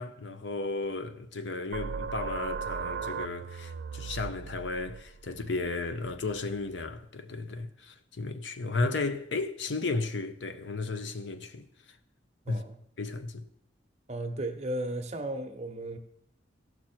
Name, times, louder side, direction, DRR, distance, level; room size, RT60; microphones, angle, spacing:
voice 1, 0.0-11.7 12.5-12.6 13.0-13.5, left 3 dB, 75° left, 0.7 m, -34 dB
sound 1, 1.7-7.0, right 6 dB, 60° right, 0.3 m, -38 dB
voice 2, 12.5-12.8 14.1-16.0, right 1 dB, 40° right, 0.9 m, -35 dB
16.0 x 6.0 x 4.4 m
head